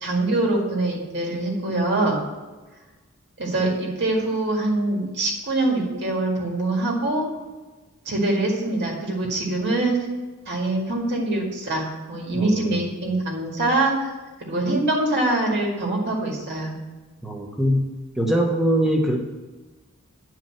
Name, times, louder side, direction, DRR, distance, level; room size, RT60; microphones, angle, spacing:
voice 1, 0.0-2.2 3.4-7.3 8.1-10.0 10.5-14.1 14.4-16.8, right 2 dB, 55° right, -1 dB, 2.0 m, -24 dB
voice 2, 12.3-12.8 17.2-17.8 18.2-19.2, equal, ahead, 0 dB, 1.2 m, -22 dB
9.9 x 4.7 x 7.7 m, 1.2 s
head